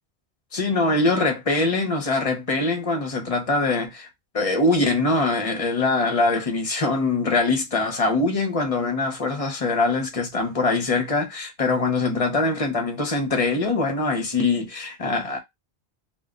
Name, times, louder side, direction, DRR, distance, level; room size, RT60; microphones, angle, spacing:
voice 1, 0.5-4.1 4.3-15.4, left 3 dB, 40° left, 0.6 m, -23 dB
2.2 x 2.1 x 3.5 m
omnidirectional pair, 1.1 m